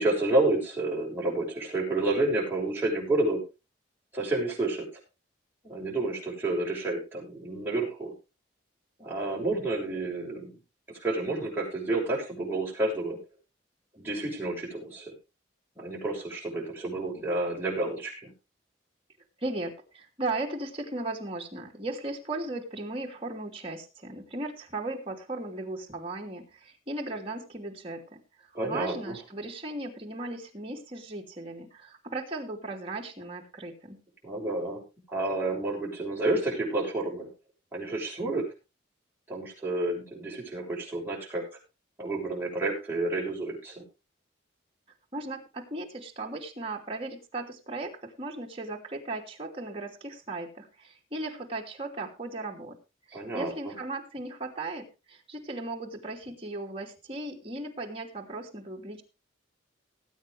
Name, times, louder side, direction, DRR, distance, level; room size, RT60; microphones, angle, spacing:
voice 1, 0.0-3.4 4.1-4.8 5.6-8.1 9.0-10.5 11.0-13.2 14.0-15.1 15.8-18.3 28.5-29.2 34.2-34.8 35.1-37.3 37.7-38.5 39.3-41.4 42.0-43.8 53.1-53.7, right 2 dB, 10° right, -4 dB, 7.0 m, -30 dB
voice 2, 19.4-28.2 28.6-34.0 45.1-52.8 53.1-59.0, right 2 dB, 30° right, 0 dB, 2.8 m, -37 dB
19.5 x 9.2 x 3.4 m, 0.28 s
head